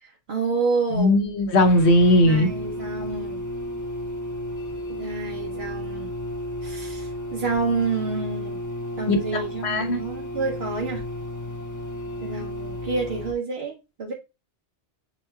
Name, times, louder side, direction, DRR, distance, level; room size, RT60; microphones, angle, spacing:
voice 1, 0.0-1.2 2.2-3.4 4.9-6.1 6.6-8.6 9.0-11.0 12.2-14.1, right 4 dB, 70° right, 1.0 m, -29 dB
voice 2, 0.9-2.5 9.1-10.0, left 1 dB, 80° left, 1.2 m, -19 dB
sound 1, 1.6-13.3, left 1 dB, 30° left, 0.3 m, -33 dB
7.0 x 3.0 x 2.2 m
omnidirectional pair, 1.1 m